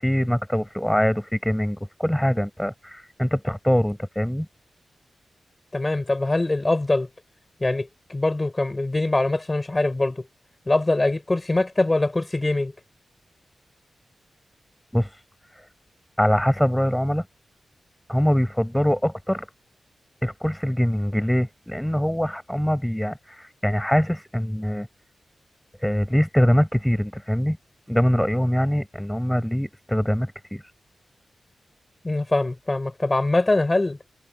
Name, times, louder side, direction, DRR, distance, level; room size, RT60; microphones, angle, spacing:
voice 1, 0.0-4.5 14.9-15.1 16.2-17.3 18.1-19.5 20.2-24.9 25.8-27.6 27.9-30.6, equal, 5° left, 7.2 m, -23 dB
voice 2, 5.7-7.1 7.6-10.2 10.7-12.7 32.0-34.0, left 2 dB, 25° left, 7.1 m, -23 dB
wide cardioid pair, 85°, 0 cm